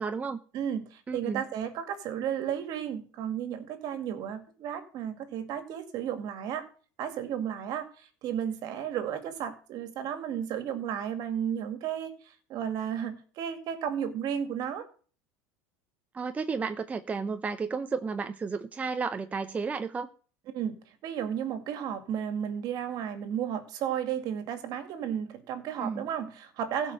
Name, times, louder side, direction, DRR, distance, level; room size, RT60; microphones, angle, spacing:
voice 1, 0.0-0.4 1.1-1.4 16.1-20.1 25.8-26.1, right 5 dB, 15° right, 0.7 m, -32 dB
voice 2, 0.5-6.7 7.0-14.9 20.5-20.7 21.0-26.9, right 9 dB, 55° right, 2.2 m, -33 dB
15.5 x 5.4 x 6.4 m
supercardioid pair, 130°, 8 cm